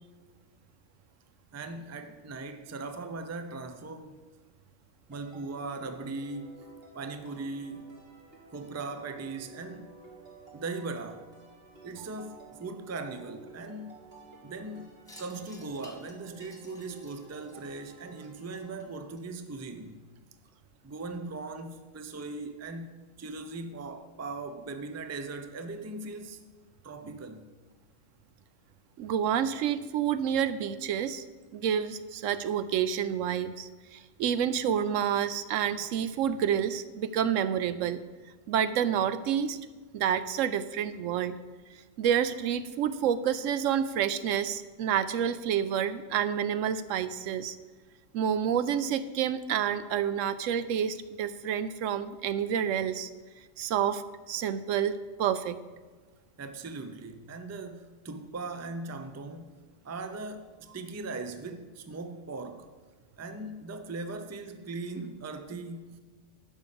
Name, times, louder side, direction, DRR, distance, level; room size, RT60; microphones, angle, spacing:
voice 1, 1.5-4.2 5.1-6.6 6.9-7.9 8.5-10.0 10.5-11.4 11.8-14.0 14.4-14.9 15.2-20.0 20.8-26.4 26.8-27.5 56.4-62.7 63.2-66.0, right 3 dB, 25° right, 0.4 m, -39 dB
sound 1, 5.1-18.8, right 3 dB, 50° right, 2.2 m, -53 dB
Wind chime, 15.0-19.7, left 1 dB, 5° left, 1.5 m, -56 dB
voice 2, 29.0-31.2 31.5-38.0 38.5-39.6 39.9-41.4 42.0-47.6 48.1-53.1 53.6-55.6, right 9 dB, 80° right, 0.9 m, -29 dB
11.5 x 5.4 x 7.0 m
omnidirectional pair, 1.3 m